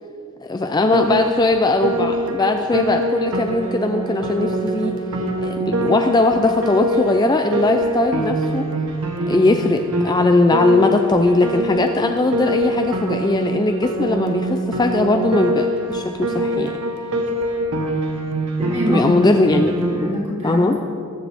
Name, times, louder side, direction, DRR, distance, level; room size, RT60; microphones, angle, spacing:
voice 1, 0.4-5.0 5.4-8.7 9.3-16.7 18.9-19.7 20.4-20.8, left 2 dB, 20° left, 5 dB, 0.4 m, -19 dB
Piano, 0.9-20.1, right 1 dB, 75° right, 1.2 m, -24 dB
voice 2, 18.6-19.4 19.7-20.8, equal, 25° right, -5 dB, 2.9 m, -25 dB
20.5 x 7.6 x 3.5 m, 2.5 s
head